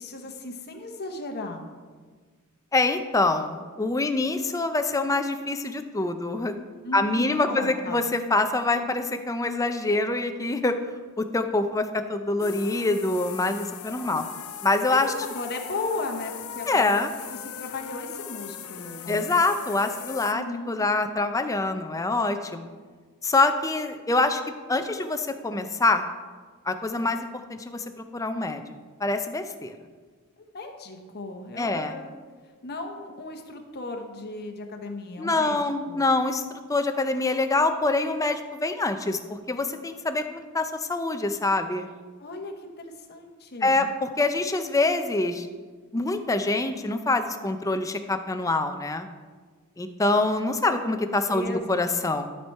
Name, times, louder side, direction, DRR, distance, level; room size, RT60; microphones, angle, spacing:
voice 1, 0.0-1.7 6.8-8.0 14.9-19.3 20.3-20.7 30.5-32.1 32.6-35.6 35.9-36.0 42.2-43.9 50.6-50.7 51.3-51.8, left 3 dB, 50° left, 4 dB, 1.0 m, -36 dB
voice 2, 2.7-6.6 6.9-10.8 11.2-14.2 14.6-15.1 16.7-17.1 19.1-22.7 23.2-24.4 24.7-26.1 26.7-27.8 28.1-28.6 29.0-29.7 31.6-31.9 35.2-41.9 43.6-45.5 45.9-49.1 49.8-52.3, left 2 dB, 15° left, 8 dB, 0.5 m, -25 dB
sound 1, 12.4-20.3, left 8 dB, 70° left, 0.5 m, -39 dB
12.5 x 4.4 x 4.6 m, 1.5 s
head